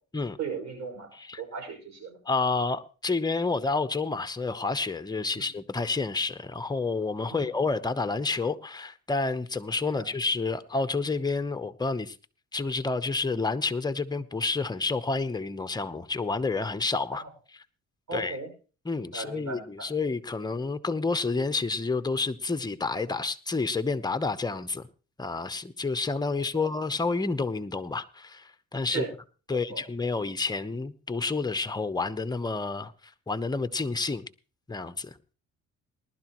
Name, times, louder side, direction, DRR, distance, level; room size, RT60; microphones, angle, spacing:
voice 1, 0.4-1.1 1.4-2.2 5.4-5.5 7.3-7.5 9.9-10.1 17.2-17.3 18.1-18.5 19.0-19.9 26.5-26.6 28.9-29.1 29.7-29.8, right 4 dB, 65° right, 5.8 m, -36 dB
voice 2, 2.2-12.2 12.5-17.2 17.5-17.6 18.1-18.4 18.8-24.9 25.2-29.0 29.5-32.9 33.3-34.3 34.7-35.1, left 3 dB, 15° left, 0.8 m, -29 dB
19.5 x 11.5 x 3.0 m
cardioid pair, 90°, 30 cm